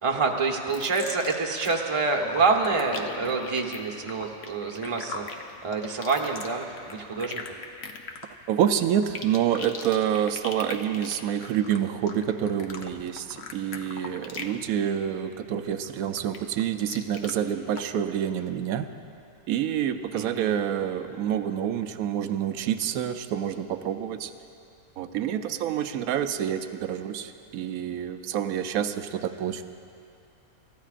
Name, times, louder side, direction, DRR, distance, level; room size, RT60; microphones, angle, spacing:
voice 1, 0.0-5.3 5.6-7.6 20.1-20.5, right 4 dB, 25° right, 2 dB, 1.0 m, -27 dB
sound 1, 0.7-1.8 2.1-14.6 14.9-15.3 15.7-17.3 17.8-17.9, left 4 dB, 50° left, 1.0 m, -39 dB
voice 2, 8.5-18.9 19.5-24.3 25.0-29.6, right 9 dB, 75° right, 9 dB, 1.1 m, -27 dB
29.5 x 14.0 x 2.5 m, 2.5 s
omnidirectional pair, 1.5 m